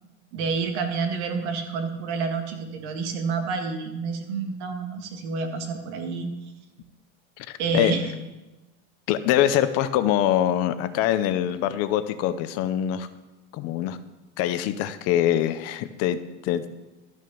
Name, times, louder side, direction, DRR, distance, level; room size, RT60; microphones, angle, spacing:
voice 1, 0.3-6.3 7.6-8.1, right 4 dB, 75° right, 4 dB, 2.0 m, -28 dB
voice 2, 7.4-7.9 9.1-13.1 13.5-14.0 14.4-16.6, left 11 dB, 45° left, 12 dB, 0.7 m, -24 dB
13.0 x 6.3 x 6.9 m, 1.1 s
supercardioid pair, 160°, 34 cm